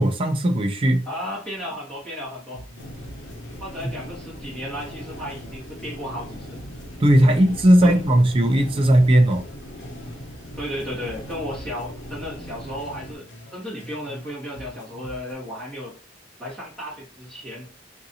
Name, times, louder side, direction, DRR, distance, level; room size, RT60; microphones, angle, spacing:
voice 1, 0.0-1.0 7.0-9.4, right 1 dB, 25° right, 0.4 m, -17 dB
voice 2, 1.0-2.7 3.6-6.6 7.3-7.4 7.8-8.0 10.6-13.3 13.5-15.9 16.4-17.7, equal, 5° left, 1.8 m, -34 dB
sound 1, 2.5-6.3 6.5-10.3 10.5-14.3 14.5-15.3, equal, 60° left, 0.9 m, -44 dB
sound 2, 2.8-13.1, equal, 90° left, 0.9 m, -40 dB
3.7 x 2.6 x 2.7 m
head